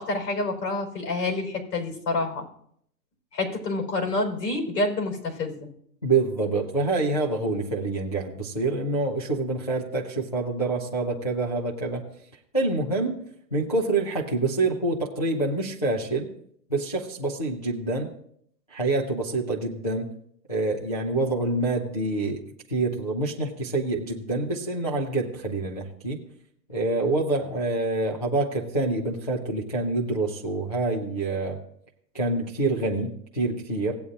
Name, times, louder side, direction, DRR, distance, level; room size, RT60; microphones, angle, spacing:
voice 1, 0.0-2.5 3.3-5.7, left 2 dB, 65° left, 2 dB, 4.4 m, -28 dB
voice 2, 6.0-12.1 12.5-13.2 13.5-16.3 16.7-18.1 18.7-20.1 20.5-22.4 22.7-26.2 26.7-31.6 32.1-34.0, right 2 dB, 25° left, -3 dB, 0.4 m, -26 dB
17.0 x 9.2 x 2.5 m, 0.69 s
hypercardioid pair, 175°, 50 cm